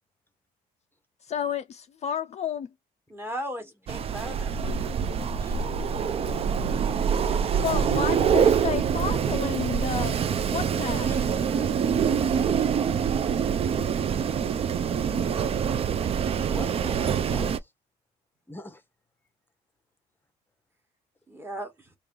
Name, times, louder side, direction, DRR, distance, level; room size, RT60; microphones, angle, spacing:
voice 1, 1.2-2.7 7.6-10.2 10.5-11.1, left 8 dB, 40° left, 0.3 m, -31 dB
voice 2, 3.1-4.7 10.9-11.8 21.3-21.9, equal, 15° right, 1.1 m, -38 dB
Wind, 3.9-17.6, right 7 dB, 35° right, 0.4 m, -25 dB
voice 3, 5.0-5.6 11.1-11.5 16.4-17.7 18.5-18.8, left 1 dB, 10° left, 0.7 m, -45 dB
3.2 x 2.4 x 3.7 m
cardioid pair, 110°, 17 cm